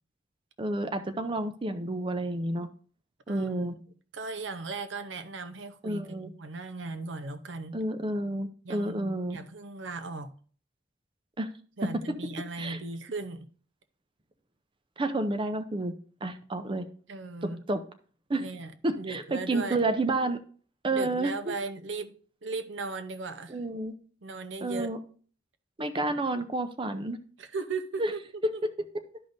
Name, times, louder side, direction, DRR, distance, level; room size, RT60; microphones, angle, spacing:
voice 1, 0.6-2.7 3.3-3.7 5.8-6.3 7.7-9.4 11.4-11.5 12.6-12.8 15.0-15.9 16.2-16.9 17.7-17.8 18.3-18.4 18.8-20.4 20.8-21.5 23.5-23.9 24.6-25.0 25.8-27.2 28.0-28.1, right 2 dB, 25° right, 0.5 m, -30 dB
voice 2, 3.3-3.8 4.1-7.8 8.6-10.3 11.8-13.5 17.1-17.6 18.4-19.8 20.9-22.1 22.4-23.6 24.2-24.9 27.4-28.2 28.5-28.6, right 3 dB, 90° right, 0.8 m, -37 dB
12.0 x 5.3 x 2.6 m
head